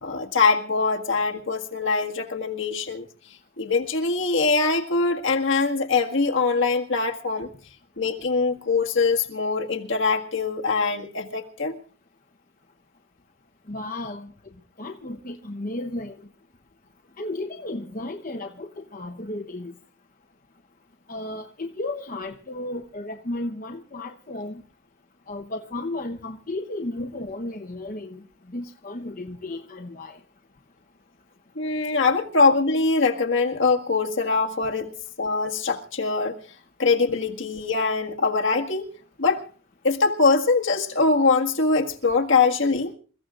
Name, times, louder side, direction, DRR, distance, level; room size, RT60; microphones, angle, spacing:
voice 1, 0.0-3.0 3.6-7.5 8.0-11.8 31.6-36.4 36.8-38.9 39.2-39.4 39.8-42.9, left 4 dB, 60° left, 1.8 m, -23 dB
voice 2, 13.7-14.3 14.8-16.3 17.2-19.7 21.1-24.6 25.3-30.2, left 2 dB, 40° left, 0.9 m, -34 dB
28.0 x 15.5 x 2.5 m
head